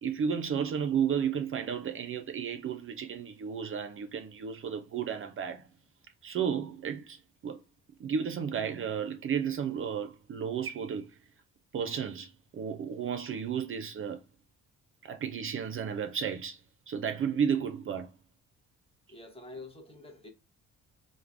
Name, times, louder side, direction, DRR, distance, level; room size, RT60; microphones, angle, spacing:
voice 1, 0.0-5.7 6.2-7.6 8.0-11.1 11.7-14.2 15.0-16.6 16.9-18.1, right 7 dB, 45° right, 0.4 m, -33 dB
voice 2, 19.1-20.3, left 2 dB, 20° left, 0.8 m, -47 dB
3.1 x 2.0 x 2.4 m
cardioid pair, 90°, 30 cm